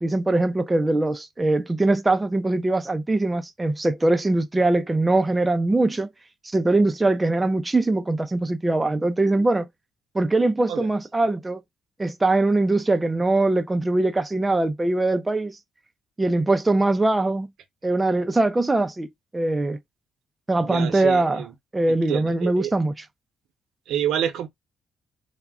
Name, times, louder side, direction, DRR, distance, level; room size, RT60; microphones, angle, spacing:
voice 1, 0.0-6.1 6.4-9.7 10.1-11.6 12.0-15.6 16.2-17.5 17.8-19.1 19.3-19.8 20.5-21.4 21.7-23.1, right 2 dB, 15° right, 0.3 m, -22 dB
voice 2, 20.6-21.5 22.1-22.7 23.9-24.5, right 10 dB, 85° right, 0.6 m, -27 dB
2.3 x 2.0 x 3.4 m
cardioid pair, 125°, 0 cm